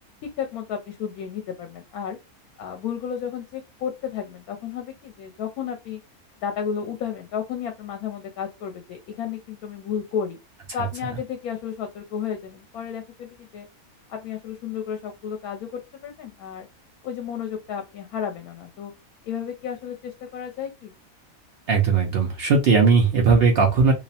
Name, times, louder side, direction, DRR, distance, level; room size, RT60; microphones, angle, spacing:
voice 1, 0.2-2.2 2.6-6.0 6.4-10.4 10.7-13.7 14.1-16.7 17.0-18.9 19.2-20.9, left 8 dB, 80° left, 1.0 m, -32 dB
voice 2, 21.7-23.9, right 5 dB, 65° right, 0.6 m, -18 dB
2.8 x 2.0 x 2.7 m
omnidirectional pair, 1.5 m